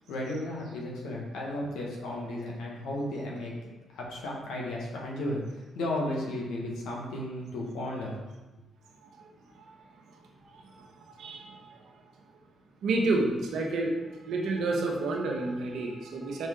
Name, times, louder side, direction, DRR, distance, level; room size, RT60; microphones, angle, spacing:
voice 1, 0.1-3.5 3.9-8.2, left 1 dB, 85° left, -2 dB, 1.4 m, -34 dB
voice 2, 10.4-11.9 12.8-16.5, right 2 dB, 75° right, 0 dB, 1.1 m, -31 dB
5.6 x 5.3 x 3.8 m, 1.1 s
supercardioid pair, 55°, 0 cm